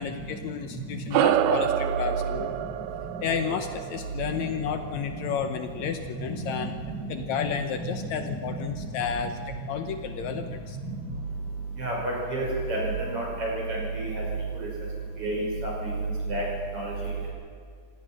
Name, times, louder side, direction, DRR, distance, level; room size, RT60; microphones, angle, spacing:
voice 1, 0.0-2.5 3.2-6.7 7.1-9.4 9.7-10.8, left 7 dB, 70° left, 7 dB, 2.0 m, -32 dB
sound 1, 1.1-5.9, right 11 dB, 75° right, 1.9 m, -28 dB
voice 2, 6.2-7.5 7.8-8.9 9.2-9.3 9.8-9.9 10.8-10.9 11.8-14.2 14.5-14.7 15.2-15.9 16.3-16.4 16.7-17.3, right 2 dB, 45° right, -3 dB, 7.2 m, -31 dB
27.5 x 17.0 x 6.2 m, 2.2 s
omnidirectional pair, 3.6 m